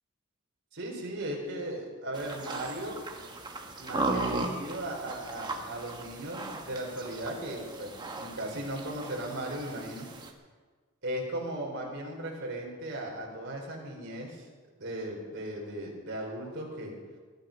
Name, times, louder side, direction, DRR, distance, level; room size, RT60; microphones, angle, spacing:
voice 1, 0.7-3.0 3.8-10.1 11.0-14.5 14.8-16.9, right 1 dB, 55° right, -1 dB, 4.3 m, -37 dB
sound 1, 2.1-10.3, right 2 dB, 20° right, 1.4 m, -37 dB
20.5 x 11.5 x 5.3 m, 1.5 s
head